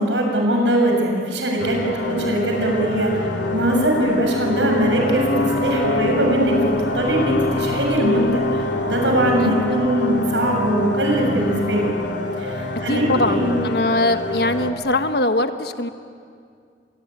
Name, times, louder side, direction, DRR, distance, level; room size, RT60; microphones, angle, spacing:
voice 1, 0.0-11.9 12.4-13.6, right 1 dB, 80° right, 1 dB, 7.0 m, -21 dB
sound 1, 1.6-14.7, left 2 dB, 80° left, 2.7 m, -25 dB
voice 2, 12.9-15.9, left 1 dB, 60° left, 8 dB, 1.3 m, -21 dB
26.0 x 22.5 x 9.8 m, 2.3 s
head